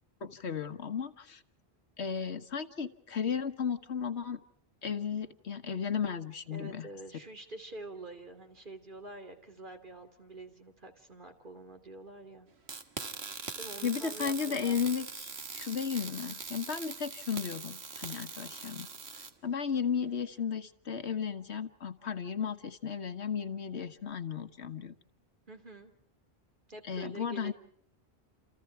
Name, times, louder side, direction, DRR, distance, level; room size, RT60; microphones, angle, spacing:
voice 1, 0.2-1.4 2.0-4.4 4.8-6.9 13.8-18.9 19.4-24.9 26.9-27.5, left 7 dB, 80° left, 10 dB, 1.6 m, -34 dB
voice 2, 6.5-12.5 13.6-14.8 25.5-25.9 26.7-27.5, right 2 dB, 50° right, 5 dB, 3.2 m, -47 dB
sound 1, 12.7-19.3, right 5 dB, 70° right, 1.8 m, -42 dB
29.0 x 28.5 x 4.6 m, 0.63 s
omnidirectional pair, 1.1 m